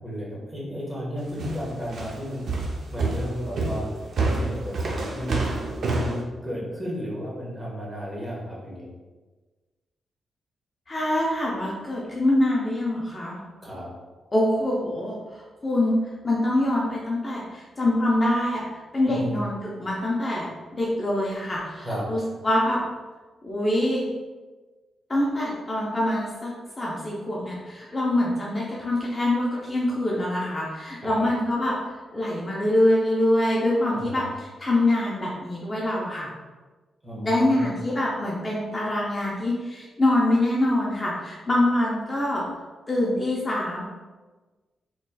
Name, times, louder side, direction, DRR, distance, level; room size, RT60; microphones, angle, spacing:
voice 1, 0.0-2.6 2.9-3.9 4.2-5.6 5.8-8.9 13.6-13.9 19.0-19.4 21.8-22.1 31.0-31.3 33.9-34.2 37.0-37.7, equal, 10° right, -5 dB, 1.1 m, -33 dB
sound 1, 1.4-6.2, right 3 dB, 60° right, 0.5 m, -27 dB
voice 2, 10.9-13.4 14.3-15.9 16.2-22.8 23.4-24.1 25.1-26.5 26.8-31.7 32.1-36.3 37.2-42.4 42.9-43.8, left 1 dB, 25° left, -5 dB, 0.6 m, -24 dB
4.1 x 3.1 x 2.2 m, 1.3 s
wide cardioid pair, 130°, 0 cm